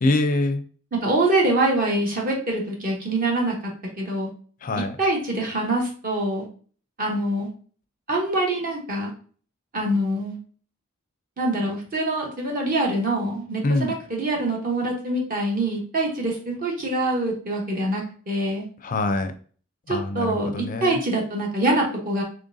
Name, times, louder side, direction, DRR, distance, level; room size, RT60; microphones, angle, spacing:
voice 1, 0.0-0.6 4.6-5.0 13.6-13.9 18.8-19.3 19.9-21.0, left 2 dB, 40° left, 9 dB, 0.4 m, -24 dB
voice 2, 0.9-3.5 4.0-4.3 5.0-6.5 7.0-7.5 8.1-9.1 9.7-10.4 11.4-18.7 19.9-22.2, right 1 dB, 40° right, -1 dB, 1.0 m, -24 dB
3.8 x 3.3 x 2.6 m, 0.43 s
head